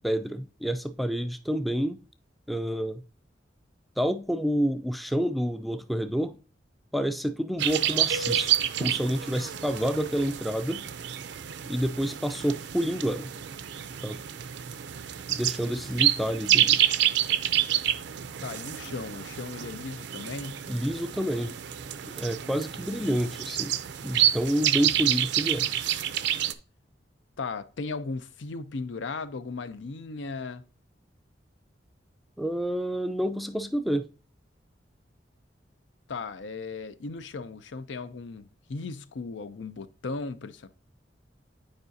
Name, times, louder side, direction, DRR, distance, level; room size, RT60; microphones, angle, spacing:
voice 1, 0.0-2.0 2.5-3.0 4.0-6.4 6.9-10.9 11.7-13.3 14.0-14.2 15.3-16.8 20.7-21.5 22.2-23.7 24.0-25.7 32.4-34.1, equal, ahead, 0.4 m, -28 dB
sound 1, 7.6-26.5, right 11 dB, 65° right, 0.5 m, -28 dB
voice 2, 18.4-20.6 27.4-30.6 36.1-40.7, left 4 dB, 80° left, 0.5 m, -36 dB
8.8 x 4.8 x 2.7 m
head